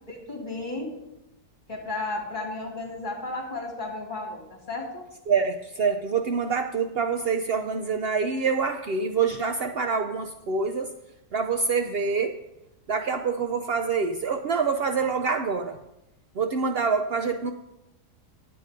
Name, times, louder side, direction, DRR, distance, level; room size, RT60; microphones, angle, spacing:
voice 1, 0.1-1.0 1.7-5.0, left 2 dB, 30° left, -1 dB, 2.5 m, -33 dB
voice 2, 5.3-10.9 11.3-12.3 12.9-15.8 16.4-17.5, right 5 dB, 90° right, 6 dB, 0.5 m, -26 dB
10.5 x 8.2 x 5.0 m, 0.91 s
omnidirectional pair, 1.7 m